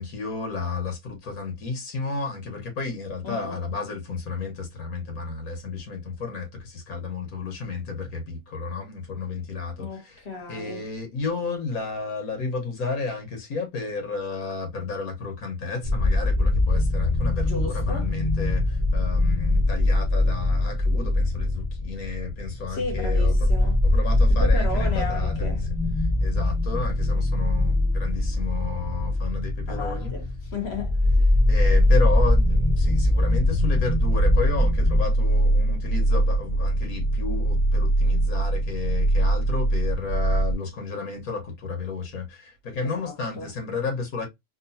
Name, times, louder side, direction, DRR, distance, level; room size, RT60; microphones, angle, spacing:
voice 1, 0.0-10.2 10.5-23.5 23.8-25.5 26.2-30.1 31.5-44.3, left 4 dB, 85° left, 1.7 m, -32 dB
voice 2, 3.2-3.6 9.8-10.9 17.4-18.1 22.7-23.8 24.3-25.6 29.7-31.0 42.8-43.5, left 3 dB, 50° left, 1.5 m, -34 dB
sound 1, 15.8-35.0, left 1 dB, 20° right, 0.6 m, -22 dB
sound 2, 33.4-40.5, right 2 dB, 30° left, 1.8 m, -23 dB
3.7 x 2.5 x 2.6 m
omnidirectional pair, 1.5 m